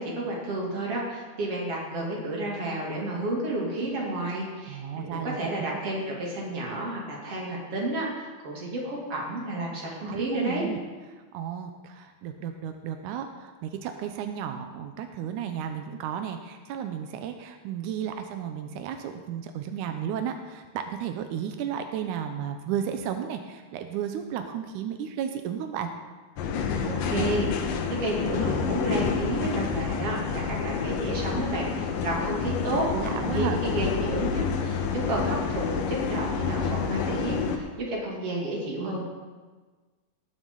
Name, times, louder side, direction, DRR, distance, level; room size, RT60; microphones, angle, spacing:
voice 1, 0.0-10.6 26.8-32.9 33.2-39.0, right 1 dB, 40° right, -3 dB, 3.3 m, -31 dB
voice 2, 4.7-5.5 10.0-10.8 11.1-25.9 32.5-32.6 32.9-33.6 38.4-38.5 38.8-38.9, right 9 dB, 85° right, 6 dB, 1.8 m, -33 dB
sound 1, 26.4-37.6, left 6 dB, 70° left, 2.4 m, -29 dB
18.5 x 9.4 x 3.9 m, 1.4 s
omnidirectional pair, 4.4 m